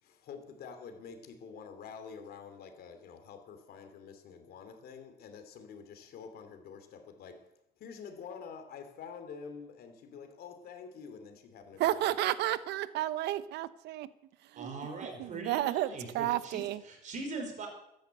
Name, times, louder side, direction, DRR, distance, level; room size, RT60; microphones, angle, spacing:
voice 1, 0.0-7.5 7.8-12.1, left 6 dB, 65° left, 2.7 m, -47 dB
voice 2, 11.8-14.1 14.5-14.7 15.2-16.8, right 14 dB, 80° right, 0.9 m, -32 dB
voice 3, 14.6-17.7, right 3 dB, 45° right, 5.2 m, -41 dB
14.0 x 10.5 x 8.1 m
cardioid pair, 110°, 17 cm